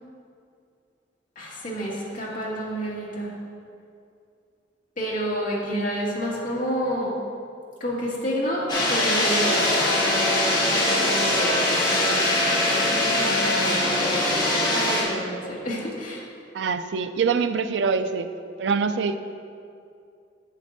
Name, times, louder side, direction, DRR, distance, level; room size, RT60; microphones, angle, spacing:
voice 1, 1.4-3.3 5.0-7.2 7.8-16.2, equal, 45° left, -6 dB, 2.1 m, -30 dB
sound 1, 8.7-15.0, left 1 dB, 25° left, 2.2 m, -22 dB
voice 2, 16.5-18.3 18.6-19.2, right 5 dB, 70° right, 10 dB, 0.4 m, -24 dB
10.5 x 8.4 x 2.7 m, 2.4 s
head